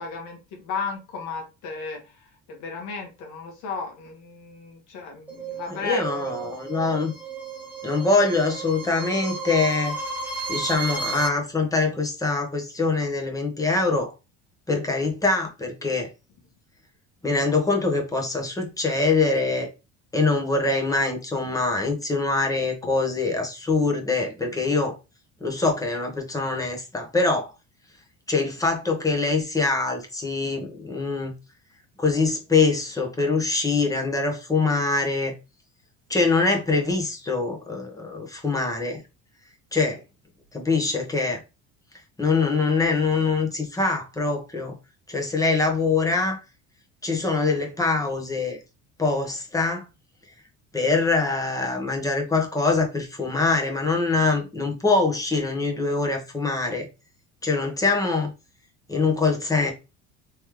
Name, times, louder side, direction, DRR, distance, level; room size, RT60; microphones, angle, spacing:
voice 1, 0.0-6.3, left 5 dB, 70° left, 1.7 m, -34 dB
sound 1, 5.3-11.3, right 4 dB, 5° right, 0.8 m, -33 dB
voice 2, 5.8-7.1 7.8-10.0 10.5-14.1 14.7-16.1 17.2-19.7 20.1-25.0 25.4-27.5 28.3-31.3 32.0-35.3 36.1-39.0 39.7-40.0 40.5-41.4 42.2-44.8 45.1-46.4 47.0-48.6 49.0-49.8 50.7-56.9 57.4-58.3 58.9-59.7, left 3 dB, 10° left, 1.1 m, -24 dB
3.7 x 3.1 x 3.1 m
cardioid pair, 120°, 31 cm